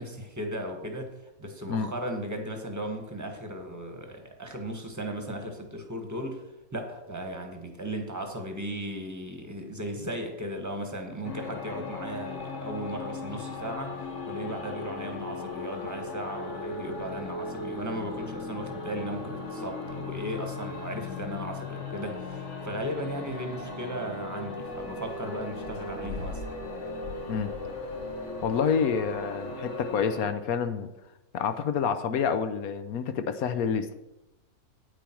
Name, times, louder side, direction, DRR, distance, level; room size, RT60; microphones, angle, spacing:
voice 1, 0.0-6.4 6.7-13.9 14.2-26.4, right 1 dB, 10° right, 4 dB, 1.2 m, -36 dB
sound 1, 11.2-30.3, left 3 dB, 50° left, 1.7 m, -37 dB
sound 2, 24.6-30.0, left 3 dB, 85° left, 1.7 m, -45 dB
voice 2, 28.4-30.9 31.3-33.9, left 6 dB, 70° left, 10 dB, 1.1 m, -28 dB
9.3 x 9.0 x 4.5 m, 0.94 s
omnidirectional pair, 1.7 m